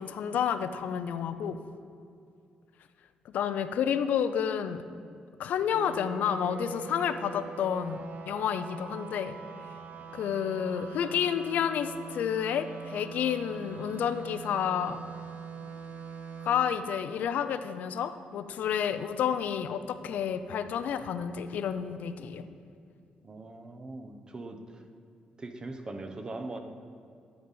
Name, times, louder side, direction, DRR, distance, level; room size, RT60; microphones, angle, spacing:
voice 1, 0.0-1.6 3.3-4.8 5.4-9.4 10.1-15.0 16.4-22.5, left 8 dB, 75° left, 11 dB, 0.5 m, -30 dB
sound 1, 5.7-16.5, right 6 dB, 65° right, 0.6 m, -43 dB
voice 2, 23.2-24.8 25.4-26.6, right 2 dB, 30° right, 6 dB, 0.8 m, -41 dB
10.5 x 4.1 x 7.1 m, 2.5 s
cardioid pair, 105°, 3 cm